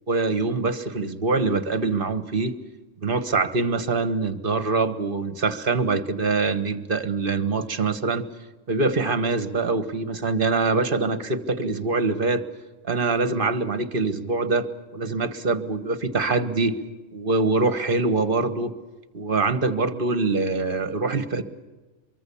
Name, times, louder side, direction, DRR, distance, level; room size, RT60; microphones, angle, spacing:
voice 1, 0.1-2.5 3.0-8.2 8.7-12.4 12.9-16.8 17.1-18.8 19.1-21.4, right 3 dB, 45° right, 12 dB, 1.5 m, -24 dB
24.0 x 23.0 x 7.1 m, 1.2 s
omnidirectional pair, 1.3 m